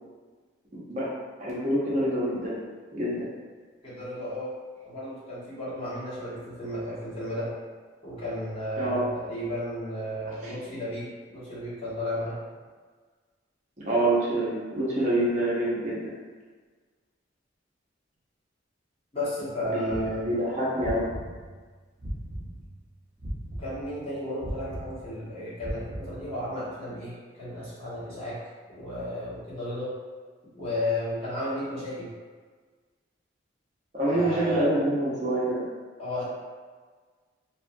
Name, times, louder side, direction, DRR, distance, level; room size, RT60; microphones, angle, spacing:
voice 1, 1.4-2.6 2.9-3.3 8.8-9.0 10.4-10.5 13.8-16.0 19.7-21.0 33.9-35.6, right 1 dB, 40° right, -8 dB, 0.7 m, -26 dB
voice 2, 3.8-4.5 4.8-7.5 8.0-12.4 19.1-20.3 23.6-28.4 28.7-29.9 30.5-32.1 34.0-34.7 36.0-36.3, left 1 dB, 30° left, -11 dB, 1.1 m, -33 dB
sound 1, 19.9-22.8 23.2-26.5, right 1 dB, ahead, 0.9 m, -37 dB
2.8 x 2.3 x 2.6 m, 1.5 s
head